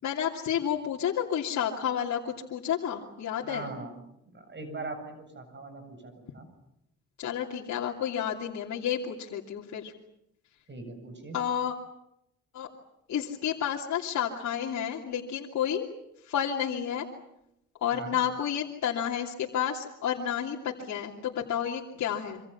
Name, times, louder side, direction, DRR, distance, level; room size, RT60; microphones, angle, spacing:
voice 1, 0.0-3.7 7.2-9.9 11.3-11.7 12.5-12.7 13.1-15.9 16.2-17.1 17.8-22.4, left 9 dB, 65° left, -2 dB, 3.0 m, -30 dB
voice 2, 3.4-3.9 4.3-6.5 10.7-11.4 17.9-18.2, right 3 dB, 35° right, 8 dB, 7.7 m, -41 dB
27.0 x 26.0 x 7.2 m, 0.80 s
cardioid pair, 90°, 30 cm